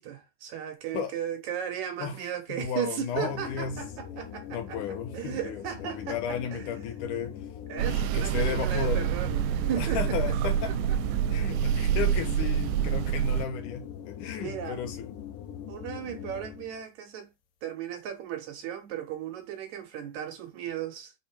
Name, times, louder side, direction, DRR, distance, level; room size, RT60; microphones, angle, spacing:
voice 1, 0.0-6.7 7.7-10.4 11.1-11.2 11.7-12.0 14.4-14.8 15.7-17.3 17.6-21.1, right 9 dB, 70° right, 2.0 m, -36 dB
voice 2, 2.5-3.8 4.5-7.3 7.8-9.0 9.8-10.9 11.3-15.1, left 7 dB, 70° left, 2.5 m, -34 dB
sound 1, 3.1-16.8, left 9 dB, 90° left, 2.6 m, -42 dB
sound 2, 7.8-13.4, right 9 dB, 85° right, 2.2 m, -27 dB
5.8 x 4.3 x 4.3 m
omnidirectional pair, 3.9 m